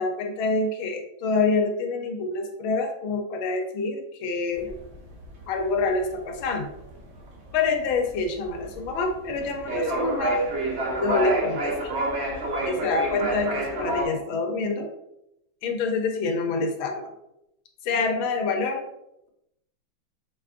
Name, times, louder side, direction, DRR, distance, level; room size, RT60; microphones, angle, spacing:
voice 1, 0.0-4.7 5.5-6.7 7.5-10.4 10.9-11.8 12.7-14.9 15.6-17.1 17.8-18.8, left 3 dB, 85° left, 3 dB, 1.5 m, -26 dB
sound 1, 4.5-14.1, right 2 dB, 70° right, 0.6 m, -29 dB
5.2 x 3.3 x 2.5 m, 0.84 s
omnidirectional pair, 2.2 m